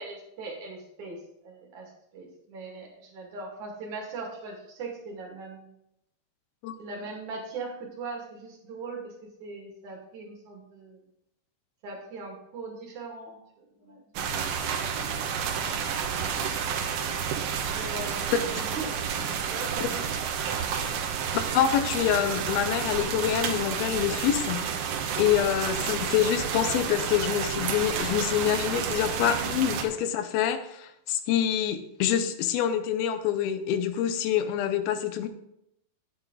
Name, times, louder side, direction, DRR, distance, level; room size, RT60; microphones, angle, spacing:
voice 1, 0.0-5.7 6.8-9.1 9.4-11.0 11.8-14.0 17.7-18.9 19.5-20.1 25.3-25.5, right 3 dB, 55° right, -2 dB, 3.5 m, -40 dB
sound 1, 14.2-29.8, right 7 dB, 90° right, 3.0 m, -30 dB
voice 2, 21.3-24.9 25.2-35.3, left 10 dB, 80° left, 9 dB, 2.6 m, -26 dB
9.1 x 8.4 x 4.0 m, 0.79 s
omnidirectional pair, 4.5 m